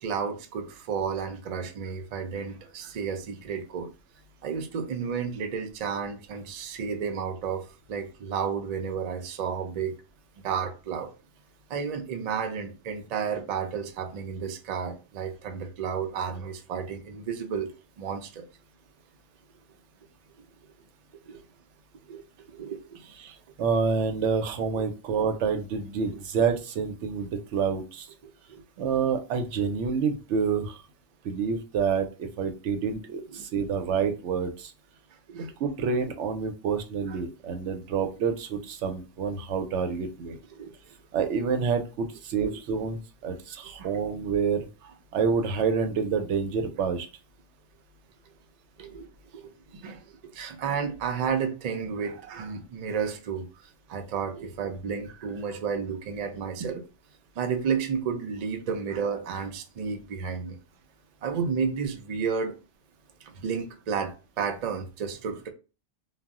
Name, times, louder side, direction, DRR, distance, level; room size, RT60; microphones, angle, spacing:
voice 1, 0.0-3.9 4.4-9.9 10.4-11.1 11.7-17.7 18.0-18.5 21.3-21.4 22.1-23.0 24.8-24.9 28.2-28.6 33.3-33.4 35.3-35.5 37.1-37.2 40.5-40.7 42.4-42.6 43.8-43.9 48.8-49.1 49.3-53.5 53.9-56.8 57.4-60.6 61.2-62.6 63.2-65.5, right 6 dB, 55° right, 0.4 m, -32 dB
voice 2, 23.2-28.1 28.8-30.8 31.2-34.7 35.6-40.4 41.1-44.7 45.1-47.1, right 5 dB, 80° right, 0.9 m, -28 dB
2.3 x 2.0 x 3.5 m
omnidirectional pair, 1.2 m